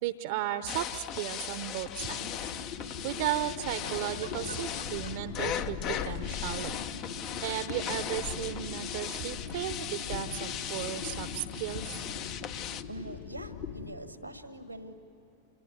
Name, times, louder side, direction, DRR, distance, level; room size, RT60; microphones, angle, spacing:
voice 1, 0.0-2.4 3.0-6.8 7.4-11.8, right 13 dB, 50° right, 12 dB, 0.8 m, -35 dB
sound 1, 0.7-12.8, left 10 dB, 40° left, 0.7 m, -38 dB
sound 2, 2.0-13.9, left 6 dB, 60° left, 2.5 m, -40 dB
Giggle, 3.8-5.1 6.0-6.5 6.7-7.0 7.9-8.1, equal, 90° left, 1.9 m, -46 dB
voice 2, 12.9-14.9, right 1 dB, 90° right, 10 dB, 1.4 m, -43 dB
27.0 x 22.5 x 9.3 m, 3.0 s
figure-of-eight pair, 90°, 0 cm